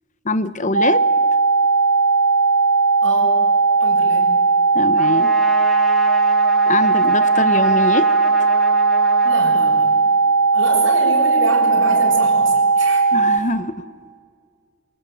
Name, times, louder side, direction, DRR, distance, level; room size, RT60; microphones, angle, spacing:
voice 1, 0.2-1.1 4.7-5.3 6.7-8.1 13.1-13.9, left 2 dB, 40° left, 13 dB, 1.0 m, -23 dB
sound 1, 0.7-13.4, right 4 dB, 55° right, 0.8 m, -16 dB
voice 2, 3.0-3.4 3.8-4.3 9.2-9.9 10.5-13.0, right 2 dB, 70° right, -1 dB, 7.4 m, -27 dB
Trumpet, 5.0-10.2, equal, ahead, 2.7 m, -31 dB
24.5 x 23.5 x 9.3 m, 2.1 s
head